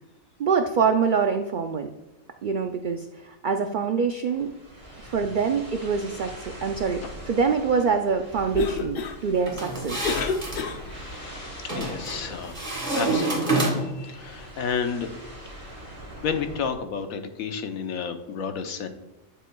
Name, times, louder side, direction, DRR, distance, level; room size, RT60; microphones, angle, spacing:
voice 1, 0.4-1.9 2.4-4.5 5.0-10.1, right 5 dB, 85° right, 6 dB, 0.4 m, -25 dB
sound 1, 4.3-16.7, equal, 10° right, 2.4 m, -43 dB
Cough, 8.3-11.2, left 5 dB, 55° left, 0.7 m, -31 dB
sound 2, 9.5-10.6 11.7-12.2 12.5-14.0, right 2 dB, 25° right, 2.4 m, -27 dB
voice 2, 10.9-15.1 16.2-18.9, left 6 dB, 85° left, 7 dB, 1.3 m, -32 dB
11.0 x 7.0 x 2.3 m, 1.0 s
omnidirectional pair, 1.4 m